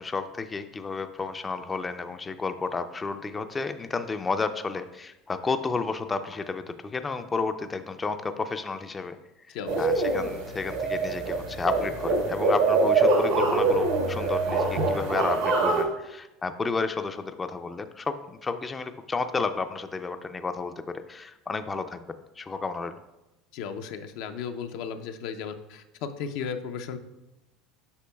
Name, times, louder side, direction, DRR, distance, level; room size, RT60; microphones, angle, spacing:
voice 1, 0.0-9.2 9.5-20.7 21.1-22.0 22.4-23.0, left 4 dB, 20° left, 9 dB, 0.4 m, -32 dB
voice 2, 9.5-9.9 23.5-27.0, left 6 dB, 70° left, 7 dB, 0.5 m, -35 dB
sound 1, 9.7-15.8, right 3 dB, 80° right, 1.6 m, -24 dB
8.3 x 5.9 x 2.3 m, 0.96 s
supercardioid pair, 95°, 0 cm